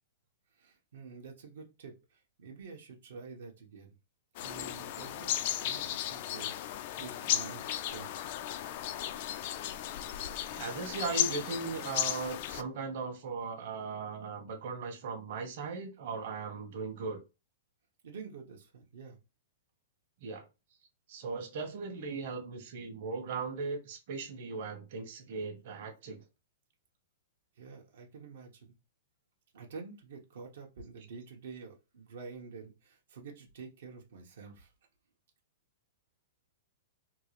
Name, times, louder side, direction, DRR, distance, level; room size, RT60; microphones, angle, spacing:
voice 1, 0.6-3.9 4.4-8.5 18.0-19.2 27.6-28.7 29.5-34.7, right 5 dB, 75° right, 0 dB, 1.0 m, -48 dB
sound 1, 4.3-12.6, left 12 dB, 45° left, 0.3 m, -35 dB
voice 2, 10.5-17.2 20.2-20.5 21.1-26.2, right 4 dB, 50° right, 3 dB, 1.1 m, -38 dB
3.7 x 2.4 x 3.1 m, 0.26 s
hypercardioid pair, 160°, 0 cm